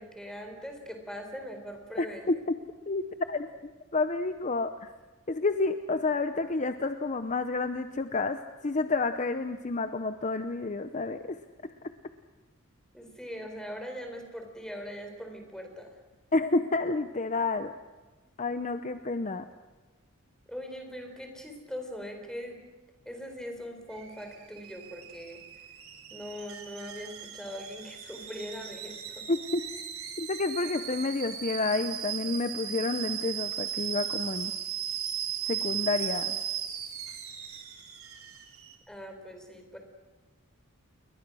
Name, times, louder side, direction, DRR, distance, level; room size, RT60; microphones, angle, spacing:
voice 1, 0.0-2.3 12.9-15.9 20.5-22.6 23.1-25.4 26.1-29.2 38.9-39.8, equal, 5° left, 4 dB, 4.2 m, -41 dB
voice 2, 2.0-2.6 2.9-3.5 3.9-4.9 5.3-11.7 16.3-17.7 18.4-19.4 29.3-29.6 30.2-34.5 35.5-36.4, left 3 dB, 35° left, 9 dB, 0.8 m, -30 dB
Alarm / Boiling, 23.9-38.7, right 9 dB, 90° right, 3.6 m, -37 dB
29.5 x 22.0 x 6.3 m, 1.3 s
head